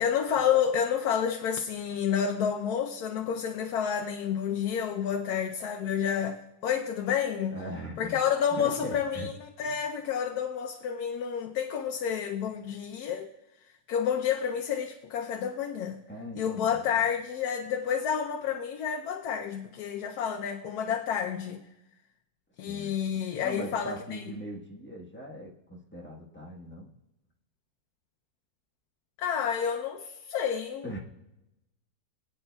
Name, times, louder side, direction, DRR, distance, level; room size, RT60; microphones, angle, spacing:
voice 1, 0.0-7.6 8.0-13.3 13.9-16.0 16.4-21.6 22.6-24.2 29.2-31.0, left 8 dB, 80° left, 1.2 m, -29 dB
voice 2, 7.5-8.2 8.5-9.3 9.6-9.8 16.1-17.1 22.6-26.9 30.8-31.0, equal, 10° left, 1.1 m, -40 dB
22.5 x 8.7 x 2.3 m
omnidirectional pair, 1.6 m